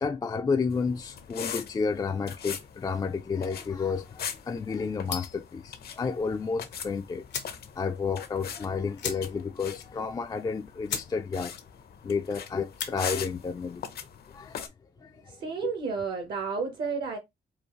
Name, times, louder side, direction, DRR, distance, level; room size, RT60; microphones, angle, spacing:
voice 1, 0.0-7.3 7.8-11.5 12.0-13.8 14.3-14.7 15.0-15.7, left 5 dB, 25° left, 0.3 m, -31 dB
sound 1, 0.7-14.7, left 8 dB, 65° left, 0.7 m, -41 dB
sound 2, 5.1-5.5 6.8-6.9 7.3-7.6 8.0-8.1 8.3-8.5 9.0-9.6 9.9-10.0 10.5-10.6 10.9-11.1 11.5-11.8 12.6-13.0, left 8 dB, 90° left, 1.0 m, -36 dB
voice 2, 15.0-17.2, right 5 dB, 65° right, 1.1 m, -32 dB
4.5 x 2.4 x 3.0 m
cardioid pair, 90°, 18 cm